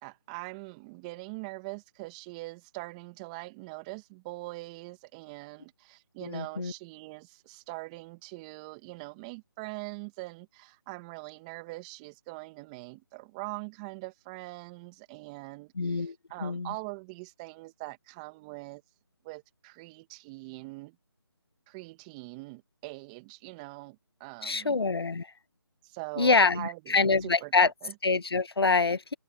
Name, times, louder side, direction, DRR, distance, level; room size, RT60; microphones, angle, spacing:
voice 1, 0.0-18.8 19.2-21.0 21.7-24.8 25.8-27.9, right 26 dB, 15° right, 2.0 m, -42 dB
voice 2, 6.2-6.7 15.8-16.1 16.4-16.7 24.4-25.3 26.2-27.7 28.0-29.1, left 4 dB, 75° left, 1.4 m, -25 dB
figure-of-eight pair, 155°, 13 cm